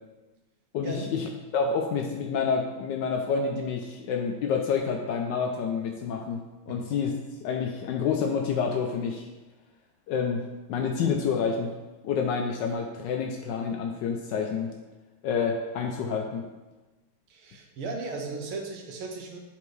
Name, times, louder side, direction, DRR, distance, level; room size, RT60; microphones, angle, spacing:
voice 1, 0.7-9.3 10.1-11.7 12.0-14.7 15.2-16.5, left 6 dB, 75° left, 3 dB, 1.0 m, -28 dB
voice 2, 17.3-19.4, right 3 dB, 85° right, 2 dB, 1.7 m, -36 dB
6.9 x 4.3 x 3.2 m, 1.1 s
omnidirectional pair, 2.3 m